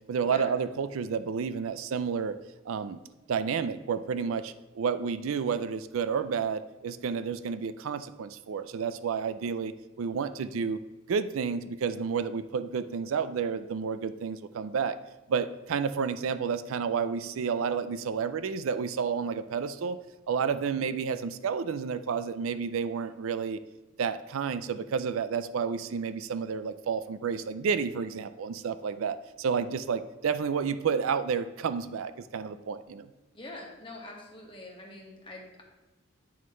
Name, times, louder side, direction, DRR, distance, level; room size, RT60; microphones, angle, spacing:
voice 1, 0.1-2.4 2.7-3.0 3.3-10.8 11.1-15.0 15.3-20.0 20.3-23.6 24.0-33.1, right 6 dB, 70° right, 12 dB, 0.4 m, -30 dB
voice 2, 33.3-35.6, left 2 dB, 25° left, -1 dB, 1.3 m, -44 dB
9.3 x 3.2 x 5.4 m, 1.1 s
head